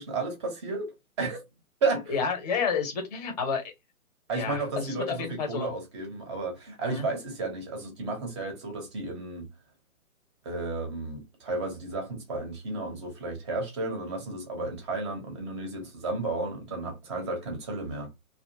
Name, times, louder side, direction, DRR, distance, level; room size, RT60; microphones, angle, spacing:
voice 1, 0.0-1.4 1.8-2.2 4.3-9.5 10.4-18.1, right 3 dB, 20° right, 0.7 m, -33 dB
voice 2, 2.1-3.7 4.3-5.7 6.8-7.1, left 5 dB, 30° left, 0.7 m, -30 dB
2.7 x 2.3 x 2.6 m
hypercardioid pair, 145°, 44 cm